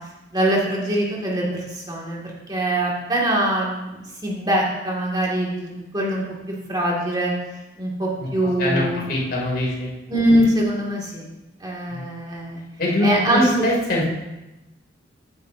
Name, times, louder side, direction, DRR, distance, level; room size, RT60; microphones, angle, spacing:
voice 1, 0.3-2.2 2.5-6.2 6.7-7.3 7.8-9.0 10.1-11.3 11.6-12.6 13.0-13.5, right 1 dB, 20° right, -3 dB, 2.5 m, -22 dB
voice 2, 9.1-9.9 11.9-12.0 12.8-13.2 13.6-14.1, left 1 dB, 55° left, -4 dB, 3.3 m, -22 dB
15.0 x 9.6 x 2.8 m, 0.98 s
head